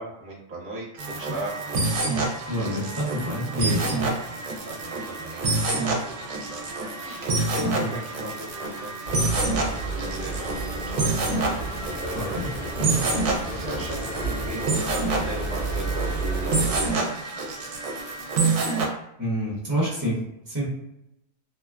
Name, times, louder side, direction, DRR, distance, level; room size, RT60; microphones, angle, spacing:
voice 1, 0.0-1.6 4.6-6.7 6.9-8.9 9.4-9.6 9.9-11.2 11.9-12.9 13.4-17.1, right 1 dB, 45° right, -4 dB, 0.9 m, -38 dB
sound 1, 1.0-18.9, right 3 dB, 70° right, 0.9 m, -27 dB
voice 2, 2.5-3.9 7.6-7.9 12.1-12.5 12.8-12.9 19.2-20.2 20.4-20.7, equal, 15° right, -8 dB, 1.0 m, -28 dB
sound 2, 9.0-16.9, right 2 dB, 65° left, 1.3 m, -32 dB
3.0 x 2.2 x 2.3 m, 0.83 s
omnidirectional pair, 1.4 m